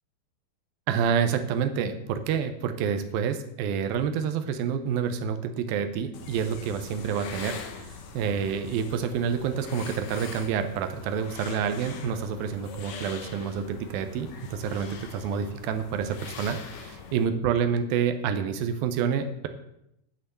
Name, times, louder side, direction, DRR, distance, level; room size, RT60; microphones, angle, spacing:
voice 1, 0.9-19.5, right 7 dB, 85° right, 8 dB, 2.1 m, -28 dB
sound 1, 6.1-17.3, left 5 dB, 70° left, 2.1 m, -43 dB
10.5 x 6.0 x 7.9 m, 0.81 s
omnidirectional pair, 5.1 m